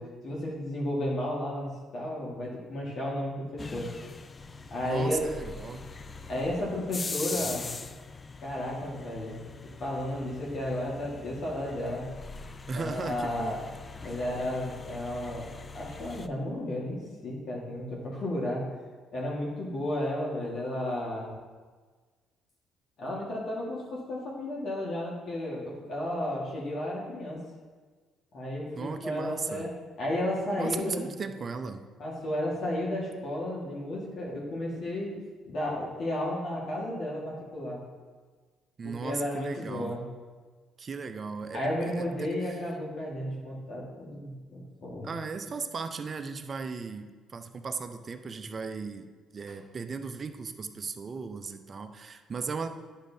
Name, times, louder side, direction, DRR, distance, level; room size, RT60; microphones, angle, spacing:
voice 1, 0.0-3.9 4.7-5.2 6.3-7.7 8.4-9.4 9.8-12.1 12.7-13.6 14.0-15.4 15.7-18.7 19.1-21.3 23.0-27.4 28.3-28.7 29.0-29.7 30.0-31.1 32.0-35.2 35.5-37.8 39.0-40.0 41.5-45.1, left 1 dB, 60° left, -4 dB, 1.7 m, -33 dB
sound 1, 3.6-16.3, left 4 dB, 35° left, 0.4 m, -42 dB
voice 2, 4.8-5.9 7.3-7.6 12.7-13.6 28.8-29.7 30.6-31.8 38.8-40.0 40.8-42.6 45.0-52.7, right 4 dB, 45° right, 8 dB, 0.6 m, -37 dB
9.9 x 6.4 x 2.7 m, 1.4 s
supercardioid pair, 60°, 0 cm